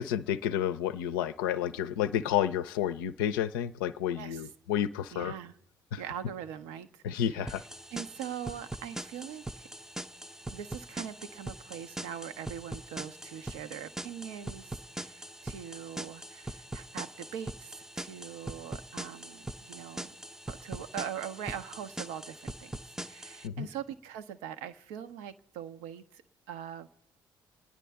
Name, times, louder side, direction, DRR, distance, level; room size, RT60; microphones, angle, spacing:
voice 1, 0.0-5.3 5.9-6.0 7.0-7.6 23.4-23.7, left 10 dB, 75° left, 12 dB, 0.5 m, -30 dB
voice 2, 4.2-4.5 5.1-5.5 5.9-7.5 7.9-9.7 10.5-20.1 20.5-22.7 23.0-26.2 26.5-26.9, right 9 dB, 70° right, 10 dB, 0.7 m, -42 dB
sound 1, 7.5-23.5, right 1 dB, 5° right, 0.5 m, -42 dB
29.0 x 9.9 x 3.4 m, 0.78 s
figure-of-eight pair, 45°, 11 cm